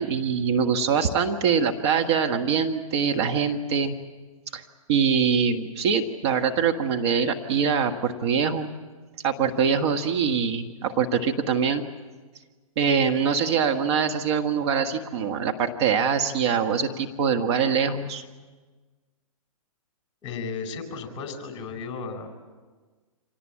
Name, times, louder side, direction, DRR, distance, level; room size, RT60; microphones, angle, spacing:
voice 1, 0.0-3.9 4.5-4.6 4.9-8.7 9.2-11.8 12.8-18.2, right 6 dB, 45° right, 5 dB, 1.5 m, -23 dB
voice 2, 20.2-22.3, left 4 dB, 25° left, 4 dB, 4.8 m, -34 dB
26.0 x 18.5 x 8.7 m, 1.4 s
hypercardioid pair, 130°, 18 cm